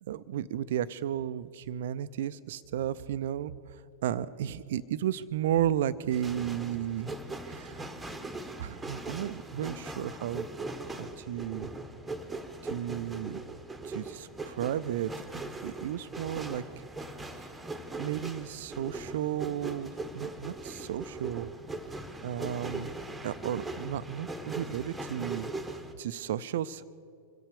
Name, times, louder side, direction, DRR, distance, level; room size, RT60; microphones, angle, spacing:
voice 1, 0.0-7.1 7.4-7.8 8.6-10.5 10.9-11.7 12.6-13.4 13.8-16.8 17.4-17.5 18.0-21.5 22.2-22.9 23.2-26.8, right 11 dB, 55° right, 16 dB, 0.5 m, -34 dB
sound 1, 6.1-25.9, right 2 dB, 5° right, 1.1 m, -40 dB
25.0 x 8.4 x 6.8 m, 2.4 s
figure-of-eight pair, 90°, 0 cm